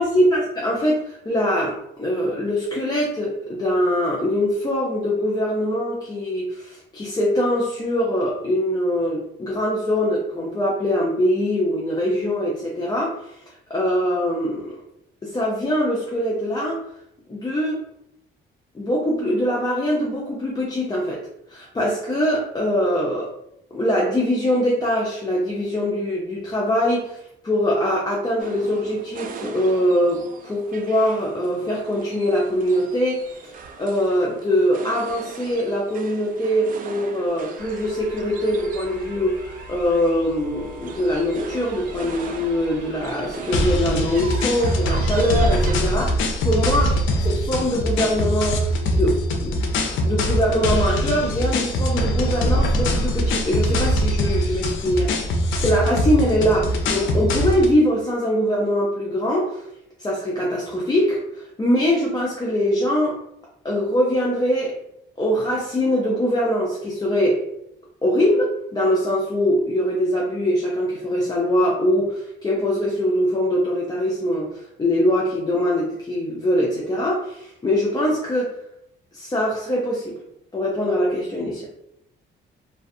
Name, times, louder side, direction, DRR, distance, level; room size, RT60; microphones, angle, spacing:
voice 1, 0.0-13.4 13.7-14.8 15.2-16.8 17.3-17.8 18.7-21.2 21.5-23.3 23.7-46.9 47.2-49.6 50.0-55.1 55.6-59.7 60.0-63.2 63.6-64.8 65.2-67.5 68.0-78.6 79.1-80.2 80.5-81.7, equal, 20° left, -3 dB, 0.5 m, -22 dB
sound 1, 28.4-45.8, right 5 dB, 45° right, 0.4 m, -40 dB
sound 2, 37.6-46.0, left 1 dB, 60° right, 1.3 m, -41 dB
sound 3, 43.5-57.8, equal, 75° left, 0.5 m, -22 dB
2.4 x 2.2 x 2.6 m, 0.77 s
cardioid pair, 90°, 20 cm